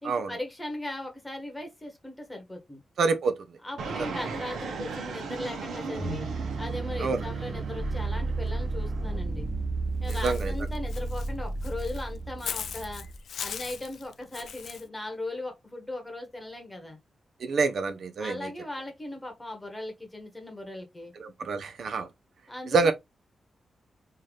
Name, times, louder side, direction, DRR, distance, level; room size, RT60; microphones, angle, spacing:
voice 1, 0.0-2.8 3.6-6.3 6.6-9.5 10.0-13.0 13.4-17.0 18.2-21.1 22.5-22.9, left 1 dB, 10° left, 1.1 m, -38 dB
voice 2, 3.0-3.3 4.0-4.1 7.0-7.2 10.1-10.5 17.4-18.5 21.2-22.1 22.7-22.9, right 4 dB, 60° right, 0.5 m, -27 dB
Fixed-wing aircraft airplane, 3.8-9.2, right 4 dB, 90° right, 1.0 m, -38 dB
sound 1, 5.9-13.2, right 3 dB, 40° right, 0.9 m, -32 dB
Walk footsteps / Bird, 10.1-14.8, left 7 dB, 75° left, 0.4 m, -39 dB
3.8 x 2.7 x 3.1 m
wide cardioid pair, 150°, 0 cm